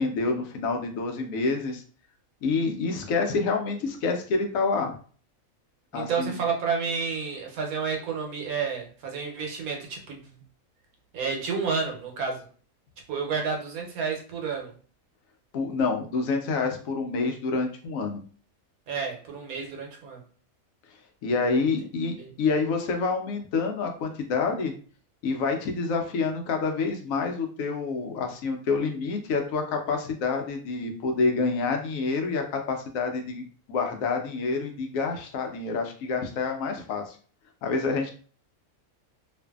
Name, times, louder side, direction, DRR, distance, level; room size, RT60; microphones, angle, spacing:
voice 1, 0.0-1.8 2.4-4.9 5.9-6.4 15.5-18.2 21.2-24.7 25.2-37.2 37.6-38.1, left 4 dB, 75° left, 4 dB, 1.0 m, -27 dB
voice 2, 5.9-10.4 11.1-12.4 13.1-14.7 18.9-20.2 22.2-22.3, right 5 dB, 85° right, 1 dB, 1.2 m, -30 dB
2.5 x 2.5 x 2.3 m, 0.43 s
omnidirectional pair, 1.5 m